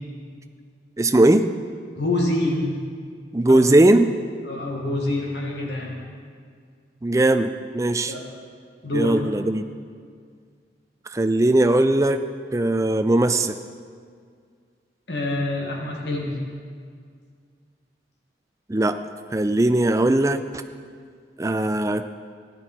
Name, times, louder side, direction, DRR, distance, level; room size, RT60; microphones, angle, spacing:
voice 1, 1.0-1.5 3.3-4.1 7.0-8.1 8.9-9.6 11.1-12.2 12.5-13.6 18.7-19.0 19.3-20.4 21.4-22.1, right 1 dB, 15° right, 9 dB, 0.4 m, -19 dB
voice 2, 2.0-2.8 3.5-3.7 4.5-6.0 8.1-8.2 8.8-9.2 15.1-16.4, left 2 dB, 80° left, -1 dB, 2.4 m, -26 dB
15.0 x 10.5 x 4.6 m, 2.1 s
head